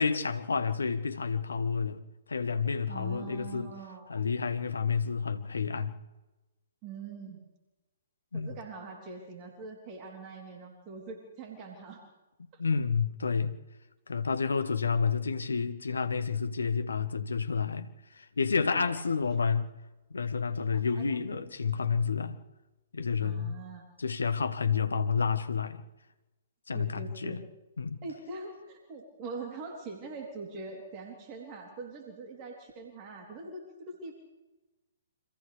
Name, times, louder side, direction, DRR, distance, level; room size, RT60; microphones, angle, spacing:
voice 1, 0.0-2.0 2.3-3.7 4.1-6.0 8.3-8.5 12.6-13.5 14.1-19.7 20.1-22.4 22.9-23.6 24.0-25.8 26.7-27.4 27.8-28.0, left 5 dB, 70° left, 1.4 m, -30 dB
voice 2, 2.9-4.1 6.8-7.4 8.3-12.0 12.5-12.6 14.5-15.2 18.7-19.1 20.7-21.5 23.2-23.8 26.7-27.4 28.0-34.1, right 4 dB, 30° right, 3.5 m, -43 dB
29.5 x 26.0 x 3.5 m
figure-of-eight pair, 120°, 0 cm